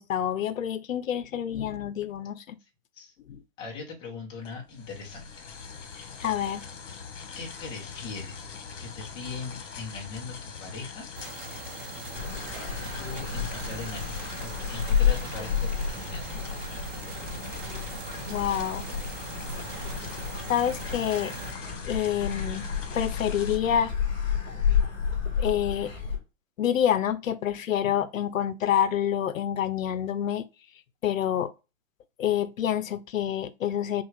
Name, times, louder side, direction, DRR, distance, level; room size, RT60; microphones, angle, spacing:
voice 1, 0.1-2.6 3.3-3.4 6.2-6.6 18.3-18.9 20.5-21.3 21.8-22.6 22.9-23.9 25.4-25.9 26.6-30.5 31.0-31.5 32.2-34.0, left 10 dB, 85° left, 0.7 m, -27 dB
voice 2, 3.6-5.5 7.3-8.5 8.8-11.1 12.7-14.0 14.4-16.3, left 4 dB, 10° left, 0.8 m, -40 dB
sound 1, 4.4-23.6, left 5 dB, 65° left, 1.3 m, -42 dB
sound 2, 11.1-21.5, right 7 dB, 40° right, 0.8 m, -43 dB
sound 3, 12.1-26.2, left 7 dB, 35° left, 1.8 m, -31 dB
5.9 x 2.4 x 3.2 m
hypercardioid pair, 165°, 39 cm